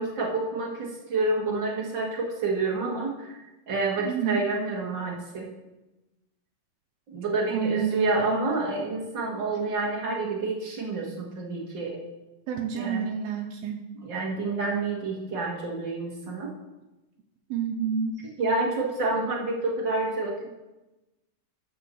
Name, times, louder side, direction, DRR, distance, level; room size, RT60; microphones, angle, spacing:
voice 1, 0.0-5.5 7.1-12.0 12.7-13.0 14.0-16.5 18.4-20.3, right 3 dB, 60° right, -2 dB, 1.2 m, -28 dB
voice 2, 4.0-4.4 7.5-8.4 12.5-13.8 17.5-18.2, right 7 dB, 80° right, 2 dB, 2.5 m, -29 dB
12.5 x 5.5 x 6.5 m, 1.0 s
omnidirectional pair, 4.7 m